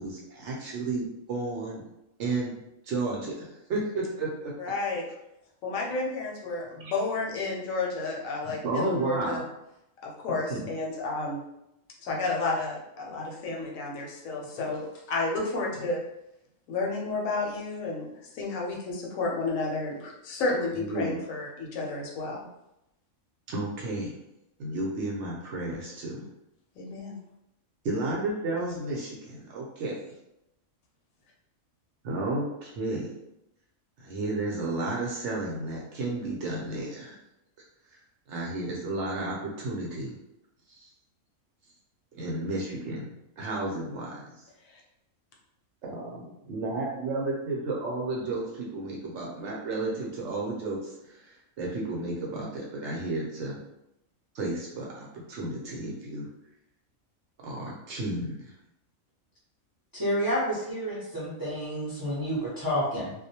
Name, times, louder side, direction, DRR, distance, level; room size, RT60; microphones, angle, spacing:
voice 1, 0.0-1.8 2.2-4.5 6.8-6.9 8.6-9.5 10.3-10.7 20.7-21.1 23.5-24.1 24.6-26.3 27.8-29.9 32.0-33.1 34.0-37.2 37.9-38.0 38.3-40.2 40.7-40.9 42.1-43.1 43.4-44.4 45.8-53.6 54.3-56.3 57.4-58.5, right 2 dB, 65° right, -3 dB, 0.8 m, -32 dB
voice 2, 4.6-5.0 5.6-9.4 10.0-11.4 12.0-16.0 16.7-18.1 18.3-22.5 26.8-27.1 44.7-44.8, left 3 dB, 75° left, -2 dB, 1.0 m, -31 dB
voice 3, 59.9-63.1, equal, 25° right, -8 dB, 0.4 m, -29 dB
2.3 x 2.1 x 2.7 m, 0.86 s
omnidirectional pair, 1.4 m